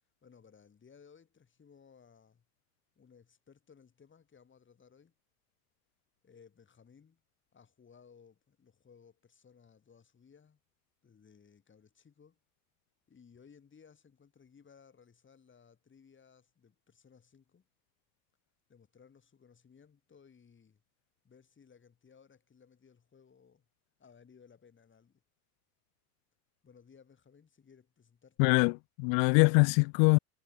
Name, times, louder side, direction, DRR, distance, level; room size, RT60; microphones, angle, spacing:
voice 1, 0.2-2.4 3.0-5.1 6.2-7.2 7.5-10.6 11.0-12.4 13.1-17.7 18.7-20.8 21.2-23.7 24.0-25.2 26.6-28.6, left 6 dB, 25° left, 6.4 m, -60 dB
voice 2, 28.4-30.2, left 40 dB or more, 50° left, 0.5 m, -24 dB
hypercardioid pair, 100°, 46 cm